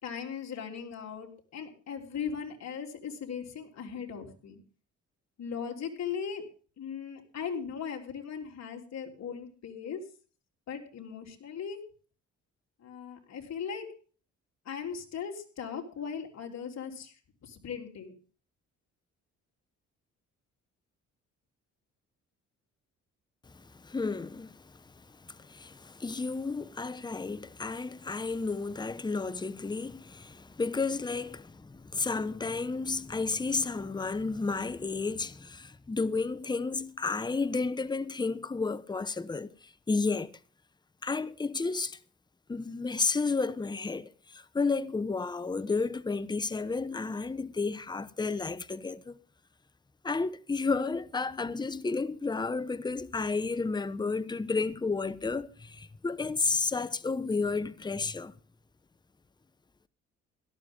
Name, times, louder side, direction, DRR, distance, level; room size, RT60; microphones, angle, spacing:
voice 1, 0.0-4.6 5.4-6.5 6.8-10.0 10.7-11.8 12.8-13.9 14.7-18.1, left 7 dB, 60° left, 3.6 m, -38 dB
voice 2, 23.7-24.8 25.2-40.4 41.0-42.0 42.5-49.2 50.0-58.3, left 4 dB, 15° left, 0.8 m, -32 dB
17.0 x 13.0 x 3.7 m
cardioid pair, 90°, 30 cm